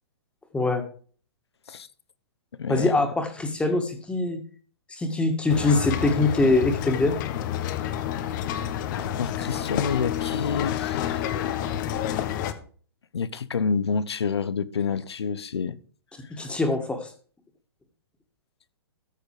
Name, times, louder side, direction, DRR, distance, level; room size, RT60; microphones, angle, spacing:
voice 1, 0.5-0.8 2.7-4.4 4.9-7.2 16.3-17.1, left 2 dB, 10° left, 2.1 m, -23 dB
voice 2, 2.6-2.9 9.0-11.3 13.1-15.8, left 5 dB, 85° left, 0.9 m, -28 dB
sound 1, 5.5-12.5, left 10 dB, 50° left, 1.2 m, -29 dB
13.5 x 6.5 x 5.0 m
hypercardioid pair, 125°, 13 cm